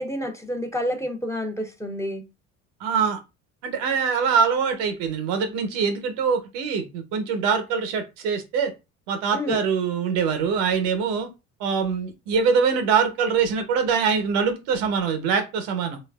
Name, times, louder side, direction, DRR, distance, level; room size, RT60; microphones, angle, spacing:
voice 1, 0.0-2.2 9.3-9.6, equal, 10° left, 0.6 m, -29 dB
voice 2, 2.8-3.2 3.6-8.7 9.1-11.3 11.6-16.0, right 6 dB, 80° right, 0.7 m, -23 dB
3.1 x 2.2 x 2.2 m
supercardioid pair, 85°, 32 cm